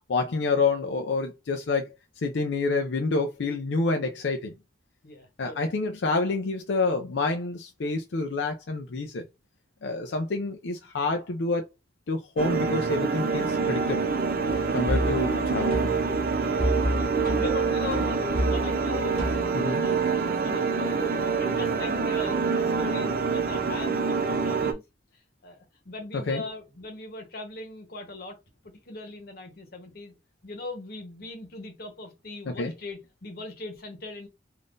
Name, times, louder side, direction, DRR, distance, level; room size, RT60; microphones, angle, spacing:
voice 1, 0.1-1.8 2.2-4.5 5.4-9.2 9.8-11.7 12.1-14.1 14.7-15.8 19.5-19.8 26.3-26.4 32.5-32.7, left 3 dB, 90° left, 0.5 m, -28 dB
voice 2, 5.0-5.7 10.1-10.2 15.0-15.2 15.7-16.0 16.4-16.6 17.0-22.4 22.8-24.8 25.4-28.4 28.9-30.1 30.4-34.3, left 2 dB, 55° left, 1.0 m, -39 dB
sound 1, 12.4-24.7, right 5 dB, 55° right, 0.5 m, -26 dB
sound 2, 14.5-19.5, equal, 35° right, 1.3 m, -31 dB
3.6 x 2.6 x 2.5 m
head